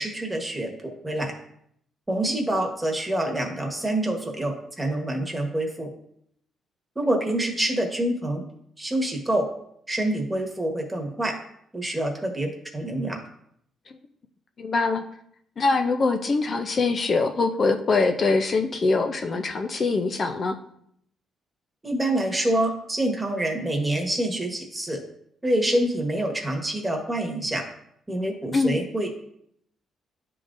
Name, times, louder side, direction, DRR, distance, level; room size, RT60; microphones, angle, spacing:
voice 1, 0.0-1.3 2.1-5.9 6.9-8.4 8.8-9.5 9.9-11.3 11.7-13.2 21.8-25.0 25.4-27.6 28.1-29.1, right 1 dB, 10° right, 2 dB, 1.3 m, -26 dB
voice 2, 14.6-15.0 15.6-20.6 28.5-28.8, left 3 dB, 45° left, 5 dB, 0.5 m, -23 dB
10.5 x 3.8 x 2.5 m, 0.71 s
cardioid pair, 90°, 0 cm